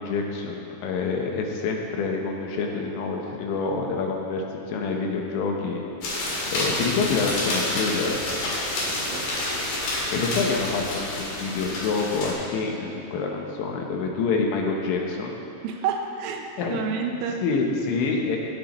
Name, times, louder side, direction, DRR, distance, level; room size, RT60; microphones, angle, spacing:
voice 1, 0.0-5.8 6.5-8.2 10.1-15.4 16.6-16.9 17.4-18.4, left 4 dB, 75° left, 1 dB, 3.1 m, -27 dB
sound 1, 6.0-12.3, left 1 dB, 55° left, 3.6 m, -28 dB
voice 2, 8.8-9.3 15.6-17.4, right 6 dB, 90° right, 3 dB, 3.4 m, -30 dB
17.5 x 9.1 x 3.0 m, 2.7 s
omnidirectional pair, 5.6 m